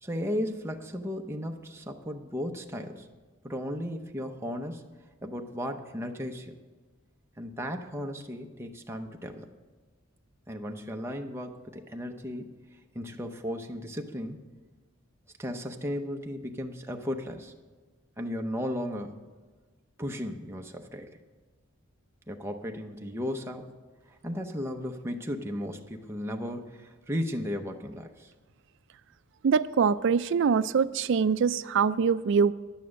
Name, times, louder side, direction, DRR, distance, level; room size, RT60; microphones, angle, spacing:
voice 1, 0.0-3.1 3.4-4.8 5.2-6.5 7.4-9.5 10.5-12.5 12.9-14.4 15.4-17.5 18.2-19.2 20.0-21.1 22.3-23.7 24.1-28.3, equal, 10° right, 3 dB, 0.7 m, -35 dB
voice 2, 29.4-32.5, right 6 dB, 60° right, 14 dB, 0.4 m, -24 dB
11.0 x 9.2 x 6.4 m, 1.3 s
head